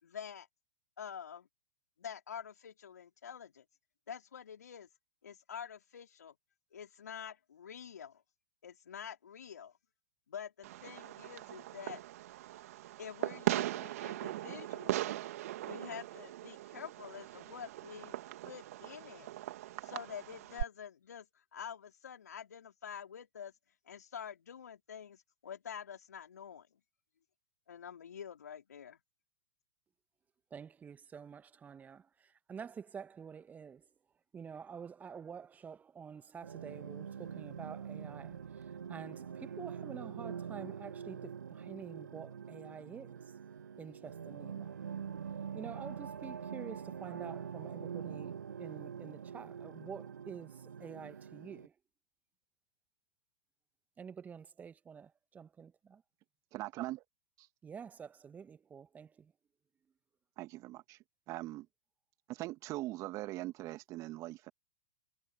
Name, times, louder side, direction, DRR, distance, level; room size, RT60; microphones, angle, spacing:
voice 1, 0.0-0.5 1.0-1.5 2.0-3.7 4.1-4.9 5.2-6.3 6.7-8.2 8.6-9.7 10.3-12.0 13.0-15.2 15.7-18.2 18.4-19.3 19.8-23.5 23.8-26.7 27.7-29.0, left 8 dB, 75° left, 4.7 m, -47 dB
Fireworks, 10.6-20.6, right 15 dB, 60° right, 2.2 m, -40 dB
voice 2, 30.5-33.8 34.3-43.4 43.8-44.8 45.5-51.7 54.0-56.0 57.6-59.3, right 6 dB, 15° right, 1.6 m, -48 dB
sound 1, 36.4-51.7, right 7 dB, 75° right, 1.9 m, -44 dB
voice 3, 56.5-57.0 57.4-57.5 60.4-61.0 61.3-61.7 62.3-64.5, right 17 dB, 35° right, 2.2 m, -41 dB
hypercardioid pair, 105°, 9 cm